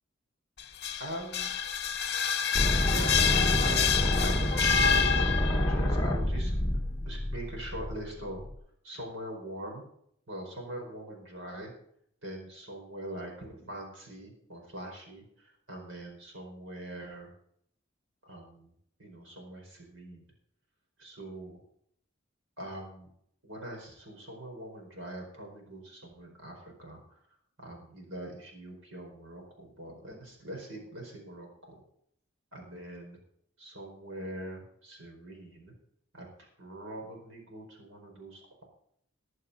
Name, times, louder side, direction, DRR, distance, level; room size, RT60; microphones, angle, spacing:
sound 1, 0.6-5.8, left 7 dB, 55° left, 1.2 m, -28 dB
voice 1, 1.0-1.5 2.7-6.5 7.0-8.4 8.8-9.8 10.3-11.7 12.2-17.3 18.2-18.7 19.0-20.2 21.0-21.6 22.6-23.1 23.4-27.0 27.6-31.8 32.5-33.2 33.6-35.7 36.1-38.6, right 1 dB, 70° right, 1 dB, 4.6 m, -43 dB
sound 2, 2.5-8.5, left 1 dB, 20° left, 1.6 m, -28 dB
19.5 x 6.6 x 5.5 m, 0.69 s
head